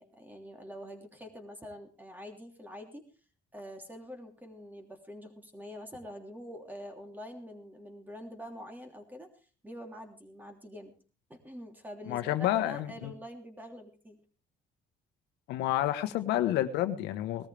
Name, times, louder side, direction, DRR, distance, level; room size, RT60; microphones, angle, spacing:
voice 1, 0.0-3.0 3.5-9.3 9.6-10.9 11.3-14.2, equal, 10° right, 4 dB, 3.1 m, -46 dB
voice 2, 12.1-13.1 15.5-17.5, left 13 dB, 85° left, 10 dB, 1.2 m, -29 dB
19.5 x 13.5 x 3.4 m, 0.36 s
cardioid pair, 110°, 17 cm